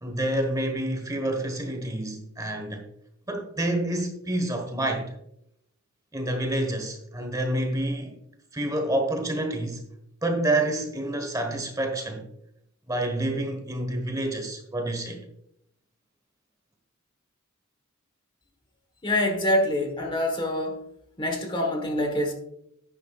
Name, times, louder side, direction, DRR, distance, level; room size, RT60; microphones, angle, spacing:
voice 1, 0.0-2.9 3.3-5.1 6.1-8.1 8.5-9.8 10.2-12.3 12.9-15.3, right 1 dB, 15° right, 1.2 m, -28 dB
voice 2, 19.0-20.8 21.2-22.3, left 1 dB, 25° left, 1.3 m, -25 dB
10.5 x 9.5 x 2.4 m
head